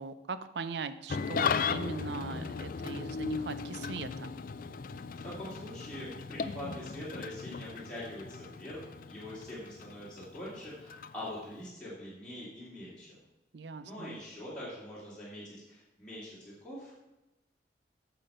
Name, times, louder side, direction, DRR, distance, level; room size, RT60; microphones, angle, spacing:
voice 1, 0.0-4.3 13.5-14.2, right 4 dB, 70° right, 13 dB, 0.5 m, -40 dB
Engine starting / Idling, 1.1-11.7, left 5 dB, 50° left, 0.4 m, -37 dB
voice 2, 5.2-13.2 13.8-16.9, left 1 dB, 5° left, -10 dB, 2.8 m, -44 dB
8.9 x 7.0 x 5.6 m, 1.0 s
head